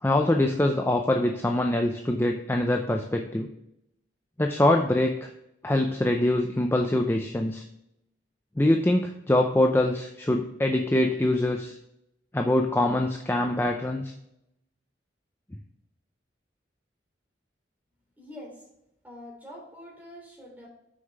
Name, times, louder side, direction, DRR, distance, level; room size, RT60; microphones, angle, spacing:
voice 1, 0.0-3.5 4.4-5.3 5.6-7.6 8.6-11.8 12.3-14.1, left 1 dB, 15° left, 3 dB, 0.5 m, -24 dB
voice 2, 18.2-18.6 19.0-20.7, left 1 dB, 10° right, -3 dB, 2.9 m, -45 dB
6.3 x 5.7 x 4.6 m, 0.82 s
head